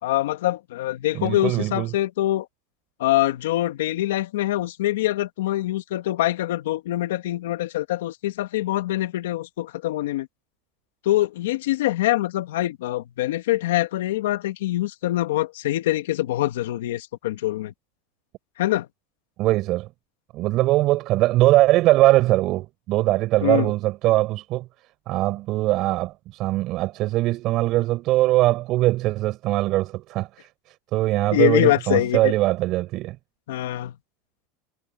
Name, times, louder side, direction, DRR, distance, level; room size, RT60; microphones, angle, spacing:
voice 1, 0.0-2.5 3.0-10.3 11.0-17.7 18.6-18.9 23.4-23.7 31.3-32.3 33.5-33.9, left 15 dB, 85° left, 2.0 m, -24 dB
voice 2, 1.1-1.9 19.4-19.9 20.3-24.7 25.1-30.3 30.9-33.2, right 17 dB, 55° right, 7.2 m, -21 dB
supercardioid pair, 110°, 0 cm